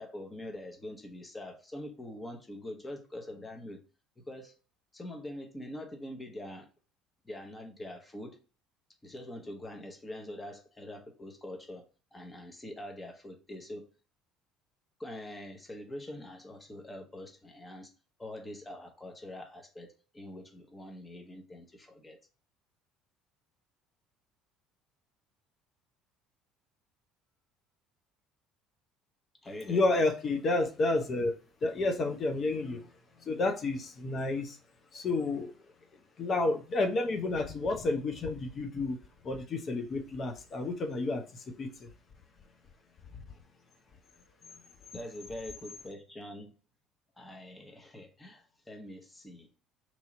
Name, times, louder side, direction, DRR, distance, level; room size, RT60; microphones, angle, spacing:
voice 1, 0.0-3.8 4.2-4.6 4.9-6.7 7.2-8.4 9.0-11.8 12.1-13.9 15.0-17.9 18.2-22.2 29.4-29.8 44.9-46.5 47.2-49.5, left 1 dB, 20° left, 1.0 m, -44 dB
voice 2, 29.7-31.3 31.6-32.9 33.2-34.6 34.9-35.5 36.2-39.0 39.2-41.9, left 2 dB, 45° left, 0.6 m, -30 dB
3.0 x 2.8 x 3.7 m
hypercardioid pair, 60°, 0 cm